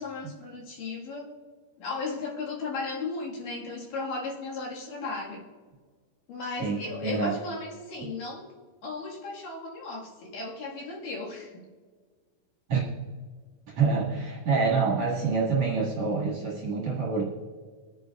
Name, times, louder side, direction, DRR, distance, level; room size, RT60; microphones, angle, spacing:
voice 1, 0.0-1.4 1.8-5.5 6.3-8.5 8.8-11.6, left 3 dB, 65° left, -3 dB, 3.1 m, -35 dB
voice 2, 6.6-7.3 12.7-12.8 13.7-17.2, right 4 dB, 55° right, -3 dB, 2.2 m, -26 dB
24.0 x 9.4 x 2.3 m, 1.5 s
omnidirectional pair, 4.5 m